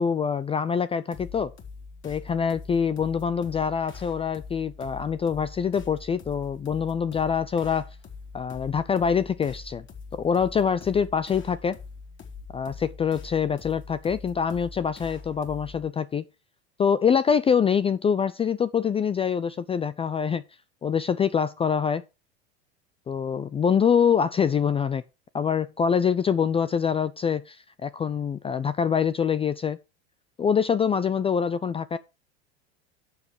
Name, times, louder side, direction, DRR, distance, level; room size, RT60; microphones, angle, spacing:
voice 1, 0.0-1.5 2.0-7.9 8.3-9.8 10.1-11.8 12.5-16.2 16.8-20.4 20.8-22.0 23.1-25.0 25.3-29.8 30.4-32.0, left 7 dB, 15° left, 0.5 m, -25 dB
sound 1, 1.1-15.9, left 4 dB, 35° left, 4.2 m, -43 dB
12.0 x 7.0 x 4.8 m
hypercardioid pair, 100°, 33 cm